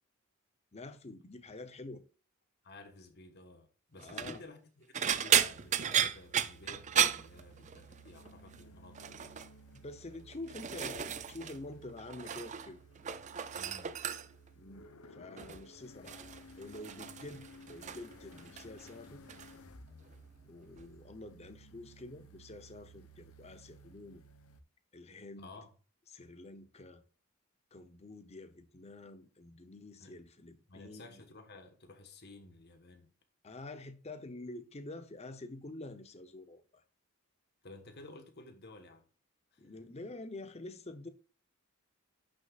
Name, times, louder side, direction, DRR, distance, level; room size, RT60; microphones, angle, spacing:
voice 1, 0.7-2.0 4.0-4.4 9.7-12.8 14.5-16.2 16.6-19.2 20.4-24.2 24.9-25.5 26.1-27.0 27.7-31.2 33.4-36.8 39.6-41.1, left 2 dB, 30° left, 0.8 m, -47 dB
voice 2, 2.6-9.3 13.5-14.0 25.4-25.7 30.0-30.2 30.7-33.1 37.6-39.0 39.5-39.8, left 2 dB, 50° left, 1.3 m, -53 dB
sound 1, 4.0-4.4 4.9-8.0 8.3-8.6 9.0-9.5 10.1-11.6 11.8-12.7 13.0-14.5 15.4-15.7 16.1-18.1 18.4-18.9 19.3-19.5 20.8-20.9, right 9 dB, 35° right, 0.4 m, -33 dB
sound 2, 5.4-24.6, right 1 dB, 90° left, 0.9 m, -56 dB
11.0 x 6.4 x 2.4 m
head